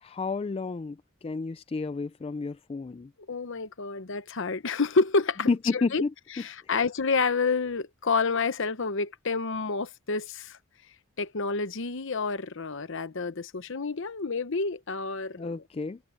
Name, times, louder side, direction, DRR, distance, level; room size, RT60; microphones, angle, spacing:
voice 1, 0.0-3.1 5.5-6.1 15.4-16.0, left 4 dB, 25° left, 0.3 m, -30 dB
voice 2, 3.3-6.0 6.4-10.6 11.2-15.6, left 4 dB, 60° left, 0.9 m, -29 dB
head